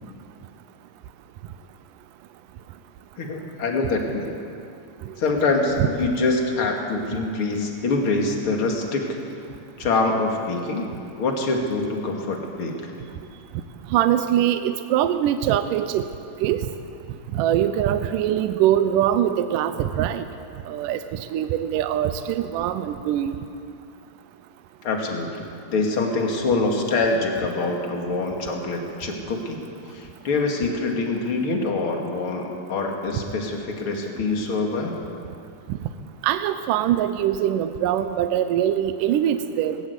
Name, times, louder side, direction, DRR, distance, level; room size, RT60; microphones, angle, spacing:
voice 1, 3.2-4.3 5.2-9.0 9.8-10.9 11.2-12.9 24.8-25.4 25.7-29.6 29.9-34.9, left 3 dB, 40° left, 1 dB, 2.9 m, -25 dB
voice 2, 13.9-16.0 16.4-16.6 17.3-20.3 20.7-21.0 21.3-23.4 36.2-39.8, right 11 dB, 75° right, 9 dB, 2.3 m, -22 dB
20.0 x 19.5 x 8.2 m, 2.5 s
omnidirectional pair, 3.9 m